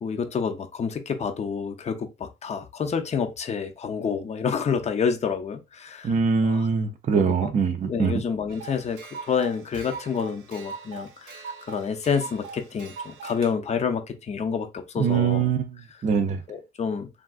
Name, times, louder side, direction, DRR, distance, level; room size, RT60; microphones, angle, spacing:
voice 1, 0.0-6.2 6.4-6.7 7.3-7.5 7.8-15.5 16.5-17.1, left 6 dB, 35° left, 0.5 m, -28 dB
voice 2, 6.0-8.1 15.0-15.7 16.0-16.4, right 6 dB, 40° right, 0.4 m, -23 dB
sound 1, 8.5-13.5, right 5 dB, 85° right, 0.7 m, -41 dB
3.5 x 2.3 x 2.3 m
cardioid pair, 90°, 20 cm